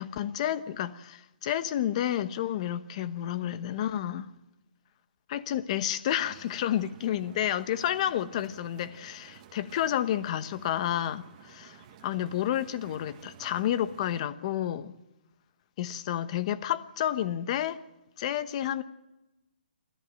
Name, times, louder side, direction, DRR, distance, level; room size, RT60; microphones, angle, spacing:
voice 1, 0.0-4.3 5.3-11.8 12.0-14.9 15.8-17.8 18.2-18.8, left 11 dB, 40° left, 1.1 m, -30 dB
sound 1, 6.2-14.2, right 10 dB, 40° right, 1.8 m, -53 dB
28.0 x 13.5 x 9.1 m
hypercardioid pair, 145°, 5 cm